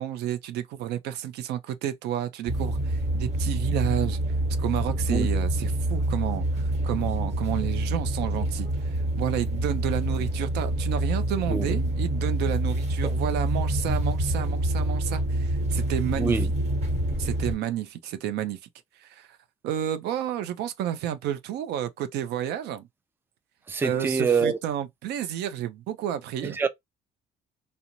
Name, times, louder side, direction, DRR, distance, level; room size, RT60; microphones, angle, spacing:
voice 1, 0.0-4.2 4.6-16.5 17.2-18.6 19.0-19.3 19.6-22.9 23.8-26.6, right 11 dB, 80° right, 0.5 m, -31 dB
sound 1, 2.5-17.5, right 1 dB, 40° right, 1.2 m, -27 dB
voice 2, 23.7-24.6 26.4-26.7, right 5 dB, 15° right, 0.3 m, -25 dB
2.5 x 2.0 x 2.8 m
cardioid pair, 110°, 17 cm